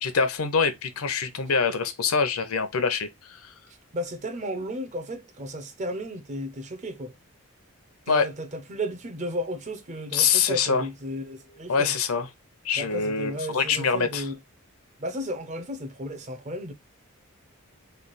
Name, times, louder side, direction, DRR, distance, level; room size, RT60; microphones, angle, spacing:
voice 1, 0.0-3.5 8.1-8.3 10.1-10.9 11.7-12.3 12.6-14.3, left 5 dB, 70° left, 0.7 m, -25 dB
voice 2, 3.9-7.1 8.1-12.0 12.8-14.4 15.0-16.7, equal, 30° right, 0.6 m, -34 dB
3.3 x 2.3 x 3.9 m
head